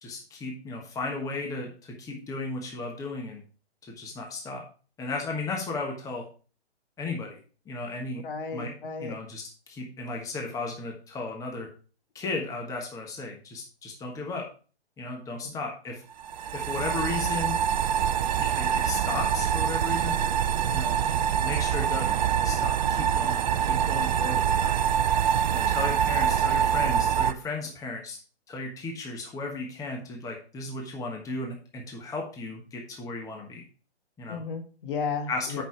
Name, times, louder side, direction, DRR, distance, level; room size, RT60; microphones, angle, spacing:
voice 1, 0.0-3.4 3.9-4.6 5.0-6.2 7.0-7.4 7.7-8.2 8.5-8.7 9.0-11.7 12.1-14.5 15.0-16.0 16.5-17.6 18.4-20.2 20.7-21.0 21.4-22.2 22.4-24.7 25.5-28.2 28.5-33.6 34.2-34.4 35.3-35.6, left 3 dB, 10° left, 1 dB, 1.3 m, -35 dB
voice 2, 8.2-9.1 20.6-21.3 34.3-35.6, left 5 dB, 50° left, 6 dB, 1.7 m, -34 dB
sound 1, 16.2-27.3, right 8 dB, 40° right, 0.5 m, -25 dB
8.2 x 5.7 x 4.5 m, 0.37 s
hypercardioid pair, 135°, 33 cm